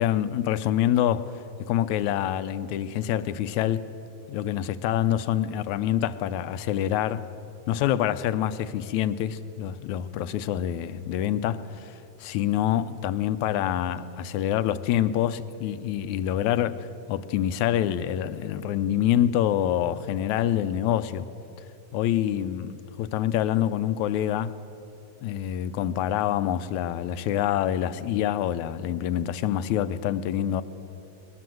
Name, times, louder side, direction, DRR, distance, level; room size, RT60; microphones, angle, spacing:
voice 1, 0.0-1.4 1.7-3.9 4.3-7.3 7.7-21.3 21.9-24.5 25.2-30.6, left 11 dB, 80° left, 2.1 m, -26 dB
21.0 x 21.0 x 7.7 m
omnidirectional pair, 3.4 m